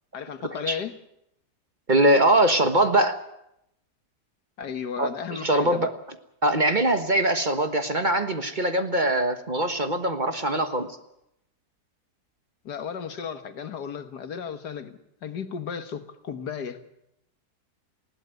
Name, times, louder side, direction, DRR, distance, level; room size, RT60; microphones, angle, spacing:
voice 1, 0.1-1.0 4.6-5.9 12.6-16.9, left 7 dB, 85° left, 2.0 m, -34 dB
voice 2, 1.9-3.2 5.0-5.9 6.4-11.0, right 1 dB, 30° right, 1.3 m, -22 dB
20.0 x 16.5 x 9.3 m
omnidirectional pair, 1.7 m